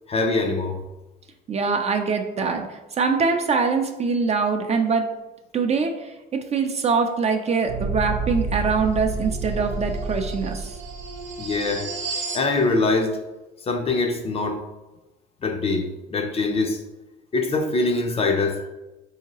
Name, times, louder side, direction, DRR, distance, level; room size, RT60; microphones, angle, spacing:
voice 1, 0.1-0.8 11.4-11.9 12.3-13.2 13.7-14.6 15.4-16.8 17.3-18.7, left 3 dB, 30° left, 4 dB, 0.5 m, -23 dB
voice 2, 1.5-5.1 5.5-10.7, right 4 dB, 35° right, 5 dB, 0.4 m, -23 dB
sound 1, 7.6-12.5, right 3 dB, 75° right, 0.7 m, -29 dB
3.6 x 2.8 x 2.9 m, 1.0 s
supercardioid pair, 90°, 19 cm